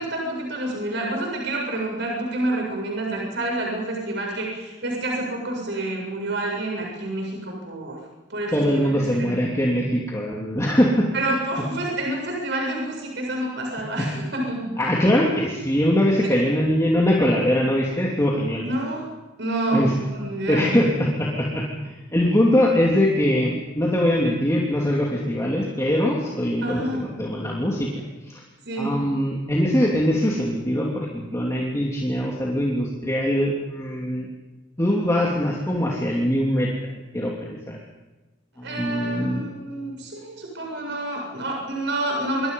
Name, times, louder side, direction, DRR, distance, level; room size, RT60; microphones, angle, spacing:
voice 1, 0.0-8.0 8.3-9.4 11.1-14.7 18.6-19.1 19.4-20.7 26.6-27.2 28.6-28.9 38.6-42.5, right 1 dB, 65° right, 0 dB, 7.6 m, -28 dB
voice 2, 8.5-11.4 14.0-14.1 14.8-18.6 19.7-19.9 20.5-27.9 28.2-28.4 28.8-34.3 34.8-36.7 37.1-37.8 38.6-39.4, equal, 15° left, -3 dB, 3.1 m, -22 dB
27.0 x 25.0 x 5.5 m, 1.1 s
head